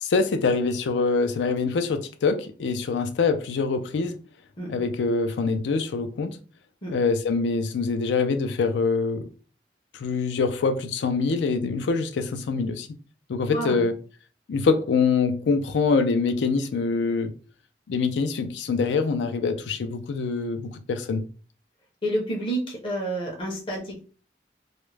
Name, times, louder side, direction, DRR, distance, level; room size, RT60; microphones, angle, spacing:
voice 1, 0.0-4.2 4.7-6.4 6.9-9.3 9.9-12.9 13.3-13.9 14.5-17.3 17.9-21.2, left 4 dB, 90° left, 0.4 m, -24 dB
voice 2, 13.5-13.9 22.0-24.1, right 1 dB, 30° left, 0.5 m, -29 dB
2.3 x 2.0 x 3.1 m
head